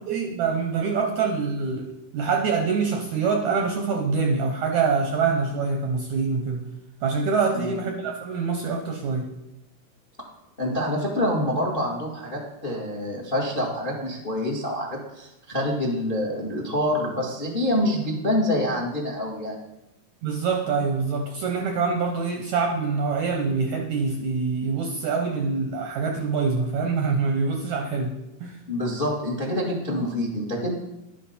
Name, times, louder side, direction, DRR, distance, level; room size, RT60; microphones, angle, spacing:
voice 1, 0.1-6.7 7.0-9.3 20.2-28.1 28.4-28.6, right 5 dB, 70° right, 3 dB, 1.8 m, -25 dB
voice 2, 10.6-19.6 28.7-30.7, left 1 dB, 30° left, -1 dB, 0.9 m, -26 dB
11.5 x 10.0 x 4.3 m, 0.89 s
omnidirectional pair, 4.3 m